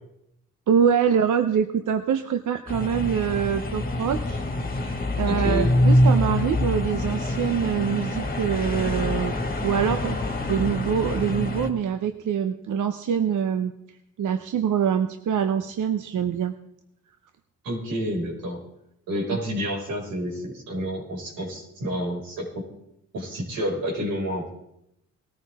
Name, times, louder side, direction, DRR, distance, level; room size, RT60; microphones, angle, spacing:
voice 1, 0.7-4.4 4.8-9.4 9.6-13.7 14.2-16.5 19.3-19.4, right 8 dB, 65° right, 9 dB, 0.9 m, -25 dB
sound 1, 2.7-11.7, left 1 dB, 25° left, 1.9 m, -25 dB
voice 2, 5.3-5.8 17.6-18.6 19.1-22.6 23.1-24.5, equal, 90° right, -3 dB, 5.6 m, -29 dB
19.5 x 13.5 x 3.6 m, 0.79 s
cardioid pair, 75°, 33 cm